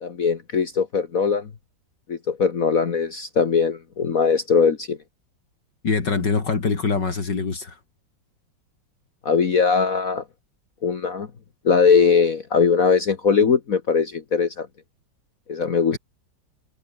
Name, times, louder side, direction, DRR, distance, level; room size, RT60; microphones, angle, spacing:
voice 1, 0.0-1.5 2.1-5.0 9.2-10.2 10.8-11.3 11.7-14.7 15.5-16.0, left 5 dB, 50° left, 1.9 m, -20 dB
voice 2, 5.8-7.8 15.9-16.0, left 4 dB, 70° left, 3.6 m, -24 dB
omnidirectional pair, 2.0 m